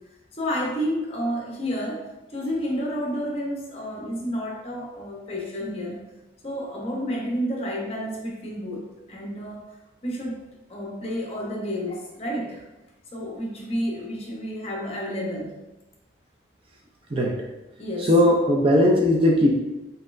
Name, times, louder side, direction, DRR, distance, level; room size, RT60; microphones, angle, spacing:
voice 1, 0.4-6.0 6.4-8.8 9.1-9.6 10.0-10.4 10.7-12.6 13.1-15.5 17.8-18.1, equal, 30° left, -2 dB, 0.8 m, -30 dB
voice 2, 18.0-19.5, left 1 dB, 30° right, 0 dB, 0.4 m, -18 dB
4.1 x 4.0 x 2.5 m, 1.0 s
head